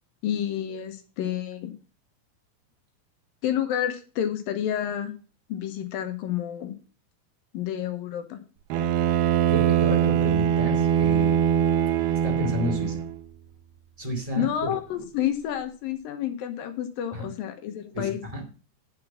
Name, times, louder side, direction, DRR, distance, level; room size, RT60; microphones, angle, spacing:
voice 1, 0.2-1.7 3.4-5.2 5.5-6.7 7.5-8.4 14.4-18.2, left 10 dB, 75° left, 8 dB, 2.8 m, -29 dB
Bowed string instrument, 8.7-13.2, right 9 dB, 85° right, 2.7 m, -22 dB
voice 2, 9.5-11.4 12.2-13.0 14.0-14.7 17.1-17.3 17.9-18.4, equal, 10° right, 1 dB, 1.9 m, -31 dB
7.6 x 7.3 x 6.9 m, 0.36 s
omnidirectional pair, 4.3 m